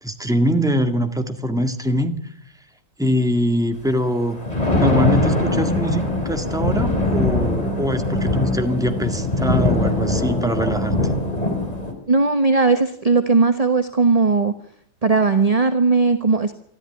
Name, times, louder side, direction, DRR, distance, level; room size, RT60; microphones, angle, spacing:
voice 1, 0.0-2.2 3.0-4.4 4.7-11.0, equal, ahead, 6 dB, 1.8 m, -23 dB
Thunder, 4.2-11.9, left 1 dB, 20° left, 3.6 m, -21 dB
voice 2, 12.1-14.5 15.0-16.5, right 4 dB, 25° right, 9 dB, 1.0 m, -17 dB
24.5 x 14.5 x 9.9 m, 0.67 s
omnidirectional pair, 2.0 m